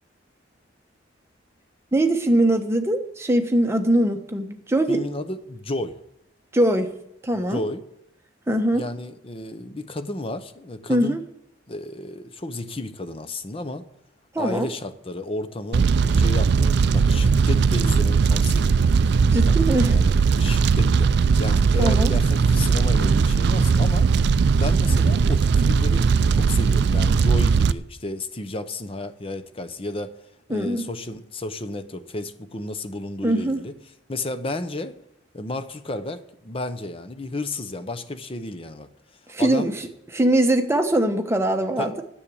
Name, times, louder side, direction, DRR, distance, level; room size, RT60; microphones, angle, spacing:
voice 1, 1.9-5.0 6.5-7.0 7.2-7.6 8.5-8.9 10.9-11.2 14.3-14.7 19.3-20.0 21.8-22.1 30.5-30.9 33.2-33.6 39.3-39.9 40.1-42.0, right 1 dB, 15° right, 6 dB, 0.9 m, -22 dB
voice 2, 4.9-6.0 7.5-7.8 8.7-11.2 11.7-13.8 14.4-18.8 19.4-19.5 19.9-21.1 21.4-24.1 24.5-26.1 26.3-30.1 30.5-33.7 34.1-34.9 35.3-38.9 39.4-39.7 41.8-42.0, left 2 dB, 30° left, 10 dB, 0.8 m, -32 dB
Fire, 15.7-27.7, right 5 dB, 55° right, 0.4 m, -19 dB
9.9 x 7.2 x 8.4 m, 0.82 s
head